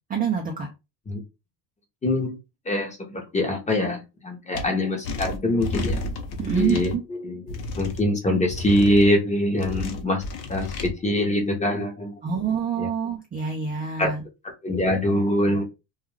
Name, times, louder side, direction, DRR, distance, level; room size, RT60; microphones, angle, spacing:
voice 1, 0.1-0.7 6.4-7.0 12.2-14.2, right 7 dB, 20° right, 0.3 m, -26 dB
voice 2, 2.0-2.3 2.7-6.2 6.5-6.9 7.2-10.2 10.5-12.1 12.8-12.9 14.0-14.1 14.6-15.6, left 1 dB, 15° left, 0.7 m, -24 dB
sound 1, 4.5-4.6 5.0-6.9 7.5-8.0 8.5-9.1 9.6-10.9, left 2 dB, 50° left, 0.7 m, -31 dB
2.3 x 2.3 x 3.1 m
cardioid pair, 135°, 49 cm